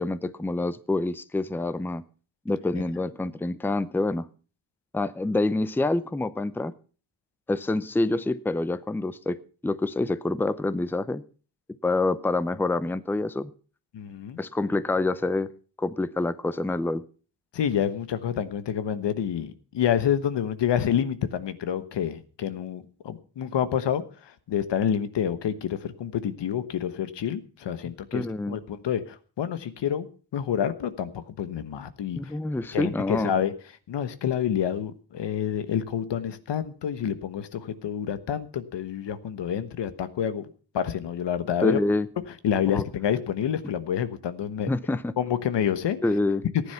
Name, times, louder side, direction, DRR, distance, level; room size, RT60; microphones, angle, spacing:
voice 1, 0.0-2.0 2.5-4.3 4.9-6.7 7.5-9.4 9.6-11.2 11.8-13.5 14.4-15.5 15.8-17.0 28.1-28.6 32.2-33.3 41.6-42.1 42.7-42.8 44.7-45.1 46.0-46.4, left 2 dB, 5° left, 16 dB, 0.5 m, -26 dB
voice 2, 13.9-14.4 17.5-32.3 32.7-33.5 33.9-40.5 40.7-41.8 42.4-44.7 45.2-46.0 46.5-46.7, left 9 dB, 85° left, 12 dB, 1.2 m, -28 dB
15.0 x 9.9 x 5.7 m, 0.39 s
wide cardioid pair, 120°, 41 cm